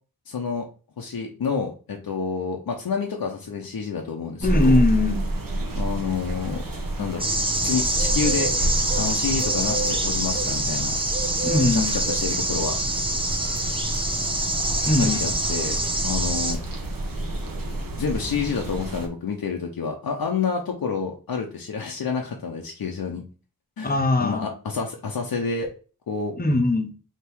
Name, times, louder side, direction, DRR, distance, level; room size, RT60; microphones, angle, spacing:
voice 1, 0.3-0.7 1.0-4.8 5.7-6.6 7.0-7.3 7.6-8.5 9.0-11.0 11.5-12.8 15.0-16.6 18.0-23.2 23.8-23.9 24.2-25.7 26.1-26.4, left 5 dB, 90° left, 1 dB, 0.7 m, -28 dB
voice 2, 4.4-5.3 11.4-11.9 14.8-15.3 23.8-24.5 26.4-26.9, left 2 dB, 25° left, 7 dB, 0.7 m, -21 dB
sound 1, 4.4-19.1, right 1 dB, 70° right, 1.0 m, -29 dB
sound 2, 7.2-16.5, right 1 dB, 15° right, 0.8 m, -25 dB
3.5 x 2.9 x 4.5 m, 0.36 s
wide cardioid pair, 70°, 35 cm